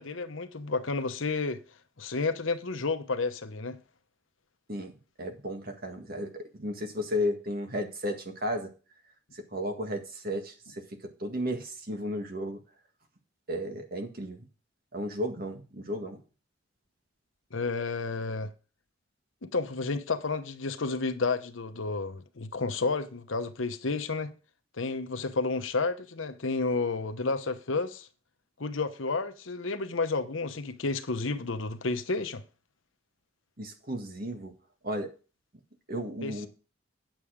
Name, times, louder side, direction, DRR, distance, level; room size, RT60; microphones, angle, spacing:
voice 1, 0.0-1.6 2.0-3.8 17.5-18.5 19.4-24.3 24.8-28.1 28.6-32.4 36.2-36.5, left 3 dB, 80° left, 1.0 m, -31 dB
voice 2, 5.2-8.7 9.3-10.8 11.2-12.6 13.5-14.5 14.9-16.2 33.6-34.5 34.8-35.1 35.9-36.5, equal, 50° right, 1.8 m, -34 dB
9.2 x 7.1 x 5.0 m
head